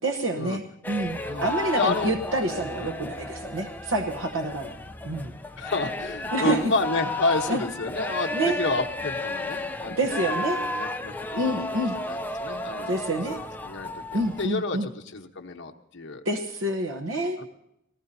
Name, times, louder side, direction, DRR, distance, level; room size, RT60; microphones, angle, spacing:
voice 1, 0.0-4.7 5.0-5.3 6.3-6.6 7.5-7.6 8.3-8.6 9.9-10.6 11.3-12.0 12.9-13.4 14.1-14.9 16.2-17.4, right 1 dB, 80° right, 4 dB, 1.1 m, -27 dB
sound 1, 0.8-14.5, left 1 dB, 10° left, 0.6 m, -33 dB
voice 2, 1.2-2.1 2.8-3.0 5.6-10.0 10.2-13.0 13.3-13.4 13.6-14.0 14.4-16.2 17.4-17.5, left 3 dB, 60° left, 3 dB, 1.2 m, -30 dB
23.5 x 19.0 x 2.8 m, 0.80 s
head